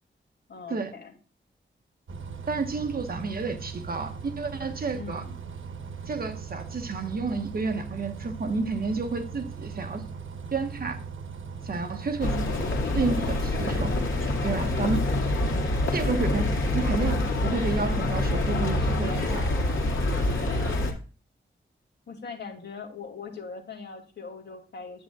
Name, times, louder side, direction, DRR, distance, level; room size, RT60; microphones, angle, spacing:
voice 1, 0.5-1.1 4.9-5.4 15.4-15.8 22.1-25.0, left 5 dB, 60° left, 2 dB, 2.6 m, -41 dB
Bus, 2.1-20.8, right 5 dB, 80° right, 1.1 m, -39 dB
voice 2, 2.5-5.2 6.1-10.0 10.5-11.0 11.6-14.0 14.4-15.1 15.9-19.5, right 4 dB, 50° right, 5 dB, 1.2 m, -30 dB
sound 1, 12.2-20.9, left 2 dB, 85° left, 2.1 m, -26 dB
9.5 x 9.3 x 2.4 m, 0.36 s
wide cardioid pair, 145°, 20 cm